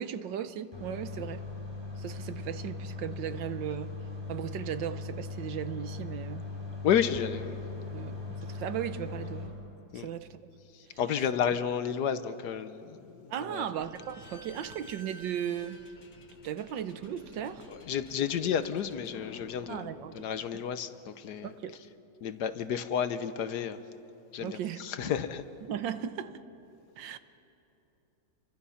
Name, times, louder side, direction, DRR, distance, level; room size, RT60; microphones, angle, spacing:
voice 1, 0.0-1.4 2.0-4.0 4.3-6.5 7.9-9.6 9.9-10.4 10.9-11.0 13.3-15.8 16.4-17.7 18.2-18.3 19.7-20.7 21.4-21.8 24.4-24.9 25.6-26.4 27.0-27.2, right 9 dB, 80° right, 1.6 m, -37 dB
sound 1, 0.7-9.5, left 3 dB, 15° right, 4.6 m, -39 dB
voice 2, 6.8-7.5 9.9-10.1 11.0-13.7 17.7-19.9 20.1-21.5 22.2-23.8 24.3-25.4, left 8 dB, 65° left, 1.3 m, -31 dB
Slam / Squeak, 13.7-21.0, left 1 dB, 85° left, 2.6 m, -52 dB
29.5 x 24.0 x 5.7 m
omnidirectional pair, 2.0 m